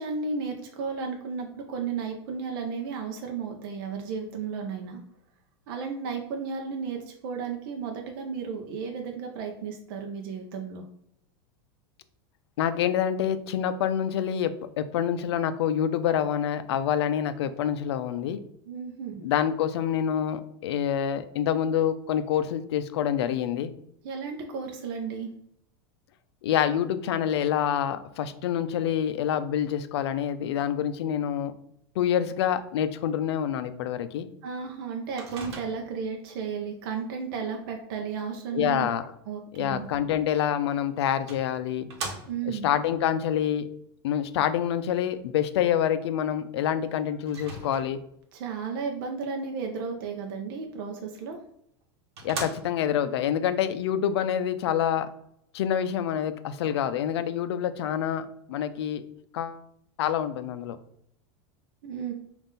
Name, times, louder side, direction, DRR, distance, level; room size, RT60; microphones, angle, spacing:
voice 1, 0.0-5.0 5.7-10.8 18.7-19.2 24.0-25.3 34.4-38.9 39.3-39.9 42.3-42.7 48.3-51.4 61.8-62.1, right 5 dB, 60° right, 2 dB, 0.6 m, -33 dB
voice 2, 12.6-18.4 19.2-23.7 26.4-31.5 32.0-34.3 38.5-39.1 39.5-41.9 42.5-43.7 44.0-48.0 52.2-55.1 55.5-59.0 59.3-59.6 60.0-60.8, left 9 dB, 90° left, 12 dB, 0.4 m, -27 dB
Microwave oven, 35.2-36.1 40.4-40.5 41.3-42.6 47.3-48.2 51.3-51.4 51.8-51.9 52.2-53.0, right 3 dB, 85° right, 1.0 m, -39 dB
3.6 x 2.5 x 3.8 m, 0.74 s
supercardioid pair, 160°, 13 cm